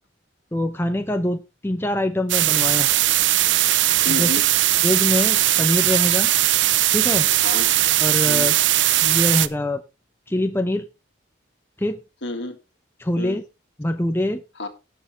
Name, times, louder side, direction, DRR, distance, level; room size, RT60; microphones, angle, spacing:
voice 1, 0.5-2.9 4.1-4.3 4.8-6.3 6.9-7.3 8.0-8.5 9.0-9.8 10.3-10.9 11.8-12.0 13.0-13.4 13.8-14.4, left 1 dB, 10° left, 7 dB, 0.7 m, -24 dB
sound 1, 2.3-9.5, right 14 dB, 70° right, 0.6 m, -19 dB
voice 2, 4.0-4.5 7.4-8.0 8.3-8.5 12.2-12.6 13.2-13.4 14.6-14.7, left 2 dB, 65° left, 6 dB, 2.0 m, -30 dB
18.0 x 6.6 x 3.3 m, 0.27 s
head